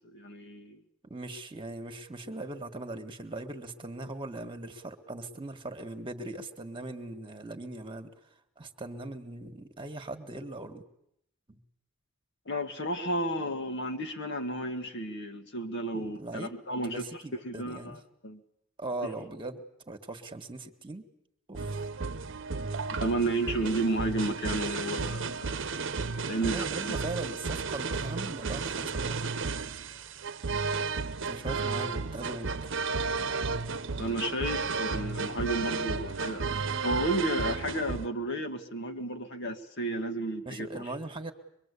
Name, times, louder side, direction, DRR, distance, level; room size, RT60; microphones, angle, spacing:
voice 1, 0.1-0.8 12.4-17.0 17.4-17.9 18.2-18.4 22.9-25.5 26.3-26.6 26.9-27.0 34.0-40.8, right 1 dB, 60° left, 1.8 m, -32 dB
voice 2, 1.0-8.1 8.6-10.8 11.5-11.6 15.9-16.5 16.8-18.0 18.8-21.1 21.5-21.8 26.3-29.2 31.2-32.7 40.4-41.3, right 2 dB, 25° right, 1.7 m, -40 dB
sound 1, 21.5-38.1, right 4 dB, 65° right, 0.9 m, -33 dB
23.5 x 23.5 x 8.4 m
head